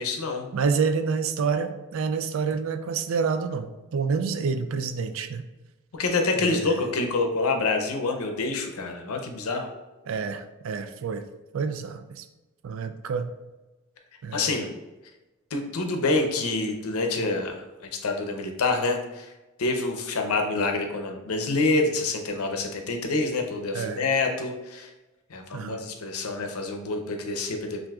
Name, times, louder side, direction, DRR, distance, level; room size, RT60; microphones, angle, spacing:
voice 1, 0.0-0.5 5.9-9.7 14.3-14.7 15.5-19.3 19.6-24.9 25.3-27.9, left 3 dB, 90° left, 4 dB, 0.6 m, -27 dB
voice 2, 0.5-5.4 6.4-6.9 10.1-11.3 11.5-12.3 12.6-13.3 14.2-14.6 23.7-24.0 25.5-25.9, right 5 dB, 70° right, 9 dB, 0.3 m, -28 dB
5.9 x 2.6 x 2.3 m, 1.1 s
head